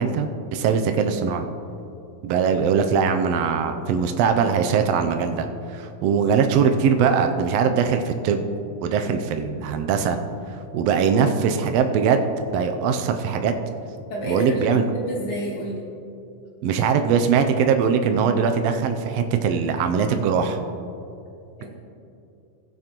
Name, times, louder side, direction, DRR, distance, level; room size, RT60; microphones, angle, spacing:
voice 1, 0.0-1.5 2.2-5.5 5.7-8.5 8.8-10.2 10.7-12.2 12.5-13.5 14.3-14.8 16.6-20.6, right 6 dB, 85° right, 6 dB, 1.4 m, -21 dB
voice 2, 14.1-15.8 21.6-21.7, equal, 50° left, -3 dB, 2.6 m, -29 dB
16.0 x 9.0 x 3.0 m, 2.7 s
omnidirectional pair, 3.5 m